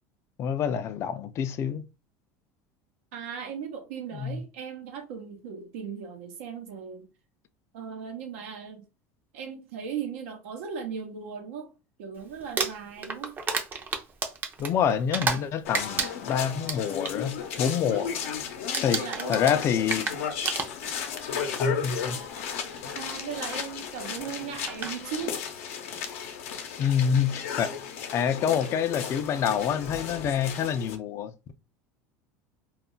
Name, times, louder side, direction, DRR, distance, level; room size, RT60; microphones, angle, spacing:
voice 1, 0.4-1.8 4.1-4.4 14.6-18.1 18.8-19.0 19.3-20.1 21.6-22.2 26.8-27.7 28.1-31.5, left 8 dB, 40° left, 0.4 m, -27 dB
voice 2, 3.1-7.1 7.7-8.8 9.3-11.7 12.0-13.3 17.8-18.2 18.9-19.5 20.0-20.1 22.9-25.4, right 7 dB, 85° right, 0.8 m, -37 dB
Crumpling crinkling, 12.4-15.5 15.7-17.1 17.5-17.8 18.1-18.4 18.7-21.1 22.1-22.2 24.2-24.3 24.7-25.0, right 5 dB, 25° right, 0.5 m, -31 dB
sound 1, 15.6-30.9, left 7 dB, 85° left, 0.6 m, -34 dB
2.3 x 2.1 x 3.7 m
supercardioid pair, 120°, 7 cm